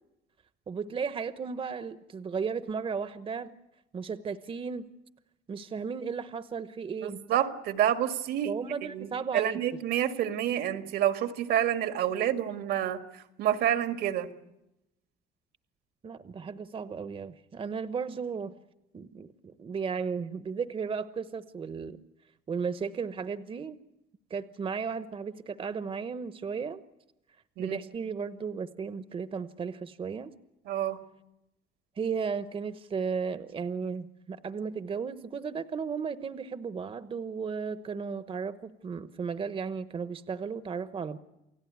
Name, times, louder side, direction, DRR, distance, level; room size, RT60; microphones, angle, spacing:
voice 1, 0.7-3.5 3.9-4.9 5.5-7.2 8.4-9.6 16.0-18.6 18.9-22.0 22.5-23.8 24.3-26.8 27.6-30.3 32.0-41.2, right 5 dB, 30° right, 12 dB, 1.0 m, -35 dB
voice 2, 7.0-13.0 13.4-14.3 27.6-27.8 30.7-31.0, right 10 dB, 75° right, 8 dB, 1.9 m, -28 dB
29.0 x 17.0 x 9.5 m, 0.92 s
cardioid pair, 110°, 17 cm